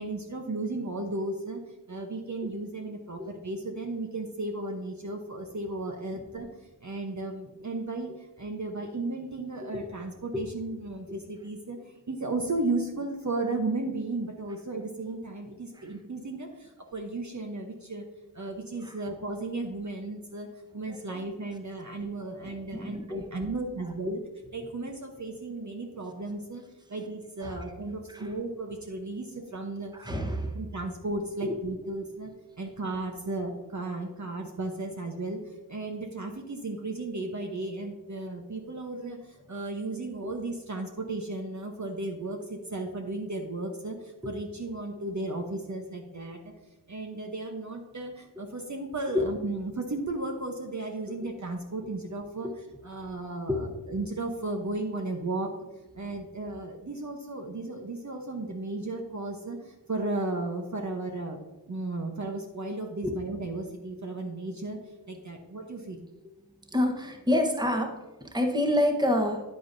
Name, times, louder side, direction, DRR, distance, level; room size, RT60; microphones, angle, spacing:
voice 1, 0.0-1.6 1.9-18.0 18.3-20.5 20.7-24.2 24.5-26.6 26.9-46.5 46.9-55.6 55.9-61.4 61.7-64.8 65.1-66.1, right 2 dB, 40° right, 2 dB, 1.0 m, -35 dB
voice 2, 20.9-21.2 22.3-23.3 24.1-24.2 27.4-27.6 28.1-28.3 29.9-30.5 31.4-31.6 31.8-31.9 40.2-40.3 49.1-49.2 52.4-52.5 53.5-53.6 63.0-63.1 66.7-69.4, left 1 dB, 10° right, 3 dB, 1.2 m, -28 dB
9.2 x 8.3 x 2.7 m, 1.1 s
cardioid pair, 45°, 43 cm